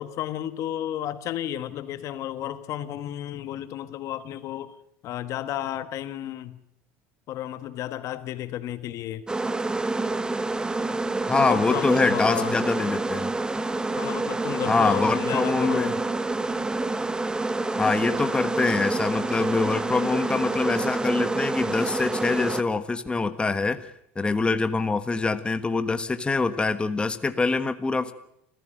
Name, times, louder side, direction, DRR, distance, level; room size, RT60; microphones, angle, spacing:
voice 1, 0.0-4.7 5.0-6.6 7.3-9.3 11.3-12.6 14.0-15.9, left 12 dB, 55° left, 12 dB, 1.4 m, -32 dB
sound 1, 9.3-22.6, right 2 dB, 10° right, 1.1 m, -28 dB
voice 2, 11.3-13.3 14.7-15.9 17.8-28.1, left 3 dB, 15° left, 10 dB, 1.4 m, -24 dB
26.5 x 15.0 x 7.8 m, 0.76 s
supercardioid pair, 95°, 6 cm